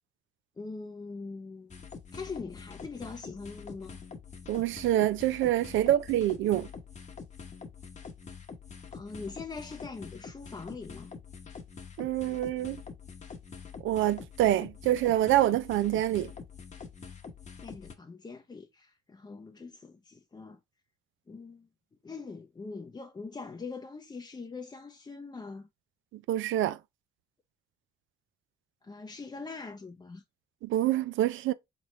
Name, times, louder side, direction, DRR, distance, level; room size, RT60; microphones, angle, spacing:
voice 1, 0.6-1.8 2.1-4.0 8.9-11.1 17.6-20.6 21.3-21.7 22.0-25.7 28.8-30.2, left 4 dB, 20° left, 0.5 m, -42 dB
sound 1, 1.7-17.9, left 5 dB, 35° left, 0.9 m, -46 dB
voice 2, 4.5-6.7 12.0-12.8 13.8-16.3 26.3-26.8 30.6-31.5, right 13 dB, 75° right, 0.5 m, -26 dB
4.1 x 3.2 x 3.1 m
cardioid pair, 90°, 20 cm